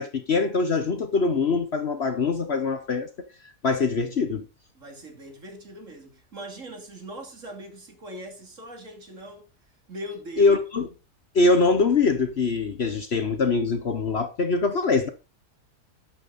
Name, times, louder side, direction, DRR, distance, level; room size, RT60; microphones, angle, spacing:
voice 1, 0.0-3.1 3.6-4.5 10.4-10.9 11.3-15.1, left 3 dB, 45° left, 1.1 m, -23 dB
voice 2, 4.7-9.5 9.9-10.6, right 1 dB, 55° right, 3.3 m, -40 dB
12.0 x 8.7 x 4.1 m
omnidirectional pair, 1.6 m